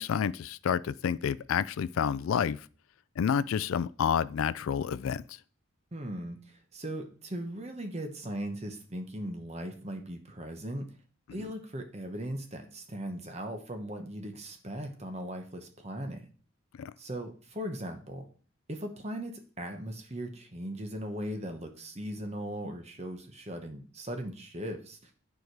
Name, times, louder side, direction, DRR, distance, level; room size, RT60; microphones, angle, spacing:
voice 1, 0.0-2.7 3.2-5.4 11.3-11.5 16.8-16.9, left 7 dB, 80° left, 0.3 m, -29 dB
voice 2, 5.9-10.9 11.3-16.2 17.0-18.3 18.7-25.1, right 1 dB, 30° right, 1.0 m, -38 dB
9.3 x 4.8 x 4.7 m
head